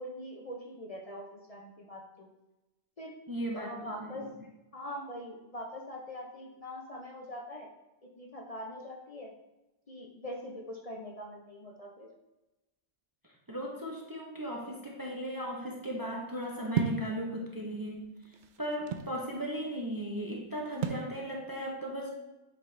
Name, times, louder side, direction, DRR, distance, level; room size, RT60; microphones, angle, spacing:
voice 1, 0.0-2.3 3.0-3.1 3.6-4.3 4.7-7.7 8.2-9.3 9.9-12.1, equal, 35° left, 0 dB, 0.7 m, -43 dB
voice 2, 3.3-4.3 13.5-22.1, equal, 20° right, -1 dB, 0.7 m, -37 dB
sound 1, 16.7-17.1 18.0-19.2 20.8-21.1, right 6 dB, 60° right, 0.6 m, -32 dB
7.8 x 4.0 x 3.3 m, 1.0 s
omnidirectional pair, 1.1 m